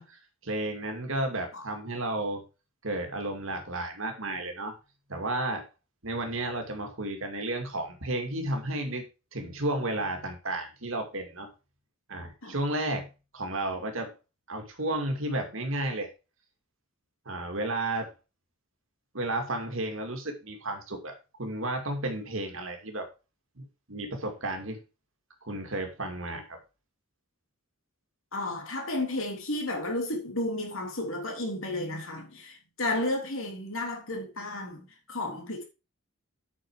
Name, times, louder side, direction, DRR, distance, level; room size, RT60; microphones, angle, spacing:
voice 1, 0.0-2.4 2.8-4.7 5.1-5.7 6.0-9.0 9.3-11.5 12.1-13.1 13.3-14.1 14.5-16.1 17.3-18.1 19.1-23.1 23.6-24.8 25.5-26.6, right 2 dB, 65° right, 2.3 m, -32 dB
voice 2, 28.3-35.6, left 2 dB, 65° left, 3.3 m, -32 dB
9.1 x 6.3 x 4.8 m
head